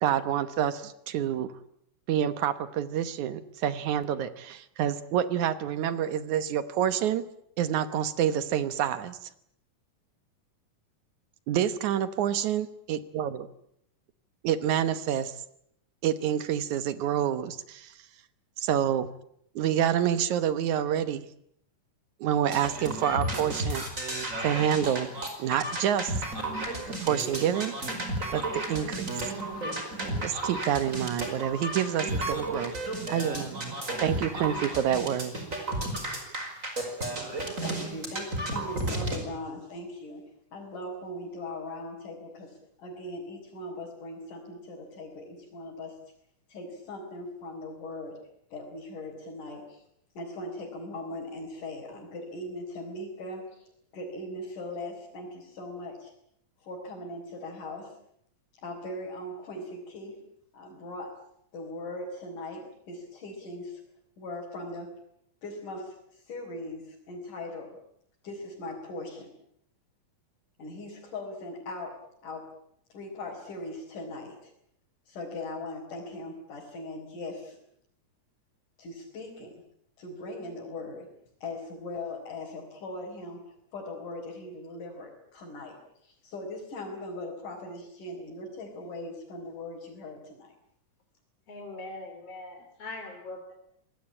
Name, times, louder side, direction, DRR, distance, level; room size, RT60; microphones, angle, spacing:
voice 1, 0.0-1.5 2.1-7.2 7.6-9.3 11.5-13.5 14.4-15.3 16.0-17.9 18.6-19.1 19.6-21.3 22.2-23.9 24.4-25.1 25.4-26.2 27.0-27.7 28.3-29.2 30.2-35.3, right 10 dB, 70° right, 13 dB, 2.5 m, -28 dB
sound 1, 22.5-39.2, right 1 dB, 25° right, 5.2 m, -33 dB
voice 2, 37.3-40.2 40.5-42.5 42.8-45.9 46.5-48.2 48.5-49.8 50.2-56.1 56.6-57.9 58.6-60.2 60.5-61.1 61.5-63.8 64.2-64.9 65.4-67.7 68.2-69.3 70.6-71.9 72.2-72.4 72.9-74.5 75.1-77.6 78.8-79.6 80.0-81.1 81.4-85.8 86.0-90.5, left 2 dB, 80° left, -3 dB, 6.1 m, -39 dB
voice 3, 91.5-93.5, left 2 dB, 50° left, 3 dB, 3.9 m, -41 dB
25.5 x 19.5 x 8.8 m, 0.73 s
omnidirectional pair, 3.6 m